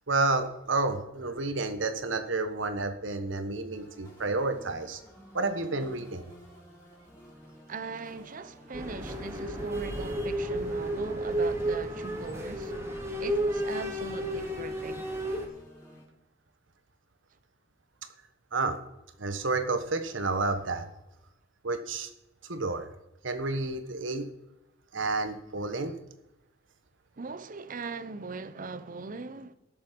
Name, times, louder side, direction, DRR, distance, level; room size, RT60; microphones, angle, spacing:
voice 1, 0.1-5.0 5.3-6.3 18.5-18.8 19.2-20.9 21.6-22.1 22.4-22.9 23.2-24.3 24.9-26.0, right 3 dB, 85° right, 1.3 m, -30 dB
sound 1, 3.7-16.1, equal, 15° left, 4.6 m, -53 dB
voice 2, 7.7-12.8 13.2-15.1 27.2-29.5, right 4 dB, 45° right, 0.7 m, -40 dB
sound 2, 8.7-15.5, right 1 dB, 15° right, 2.2 m, -32 dB
16.5 x 7.1 x 5.2 m
head